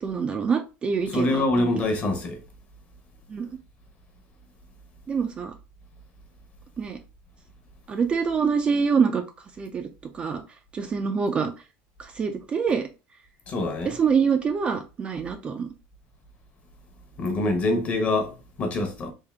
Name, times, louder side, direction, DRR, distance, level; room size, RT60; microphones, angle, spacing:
voice 1, 0.0-1.7 3.3-3.5 5.1-5.5 6.8-7.0 7.9-9.2 9.6-9.9 10.1-10.4 10.7-11.5 12.0-12.9 13.9-15.7, right 6 dB, 20° right, 0.3 m, -25 dB
voice 2, 1.1-2.4 13.5-13.9 17.2-19.1, left 2 dB, 30° left, 0.8 m, -25 dB
3.6 x 2.6 x 3.3 m
cardioid pair, 155°, 5 cm